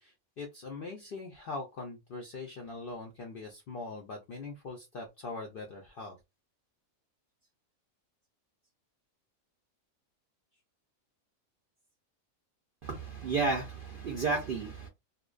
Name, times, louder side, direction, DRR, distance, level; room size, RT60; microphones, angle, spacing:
voice 1, 0.0-6.2, left 3 dB, 70° left, 0.5 m, -42 dB
voice 2, 12.8-14.9, right 4 dB, 70° right, 0.5 m, -32 dB
2.5 x 2.1 x 2.3 m
omnidirectional pair, 1.5 m